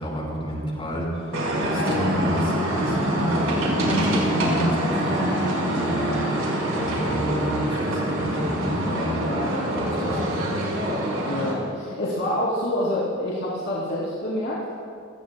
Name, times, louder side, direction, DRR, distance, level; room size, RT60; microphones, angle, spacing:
voice 1, 0.0-9.2 9.7-10.7, equal, 30° left, -3 dB, 5.0 m, -29 dB
sound 1, 1.3-11.5, right 1 dB, 85° right, 5.2 m, -25 dB
voice 2, 9.3-10.2 11.3-14.8, left 1 dB, 55° left, -7 dB, 3.2 m, -27 dB
29.5 x 20.0 x 2.3 m, 2.3 s
head